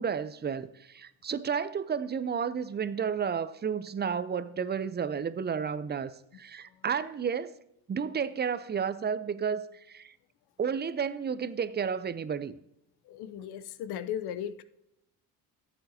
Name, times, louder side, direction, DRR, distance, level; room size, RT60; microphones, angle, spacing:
voice 1, 0.0-6.1 6.4-7.6 7.9-10.1 10.6-12.6, right 7 dB, 25° right, 15 dB, 0.6 m, -32 dB
voice 2, 13.1-14.6, left 9 dB, 60° left, 13 dB, 0.7 m, -36 dB
14.0 x 7.8 x 2.8 m, 0.81 s
hypercardioid pair, 55°, 43 cm